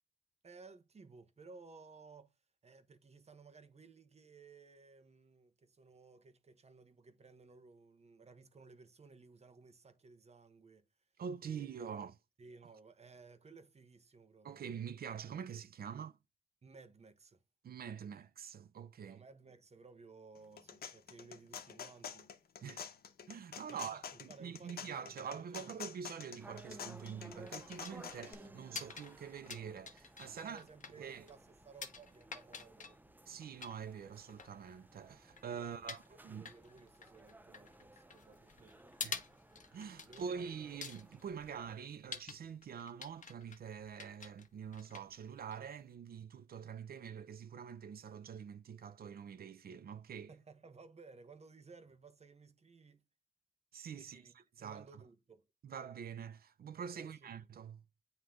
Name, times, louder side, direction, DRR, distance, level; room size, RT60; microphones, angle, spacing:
voice 1, 0.4-2.3 2.6-10.9 11.4-11.9 12.4-14.6 16.6-17.4 19.1-22.3 23.7-25.8 30.3-33.0 35.5-38.9 40.0-40.6 50.3-53.0 54.0-54.3 54.6-55.4 56.9-57.5, right 4 dB, 45° right, 1.2 m, -58 dB
voice 2, 11.2-12.2 14.4-16.2 17.6-19.2 22.6-22.9 23.3-30.7 31.0-31.2 33.3-36.5 39.0-39.2 39.7-50.3 53.7-54.2 54.6-55.0 55.6-57.8, right 7 dB, 70° right, 0.6 m, -45 dB
sound 1, 20.3-28.3, left 7 dB, 80° left, 0.9 m, -48 dB
sound 2, 26.4-41.8, right 2 dB, 10° right, 0.5 m, -58 dB
sound 3, 26.9-45.9, left 5 dB, 55° left, 1.1 m, -50 dB
9.5 x 3.2 x 3.7 m
wide cardioid pair, 100°, 16 cm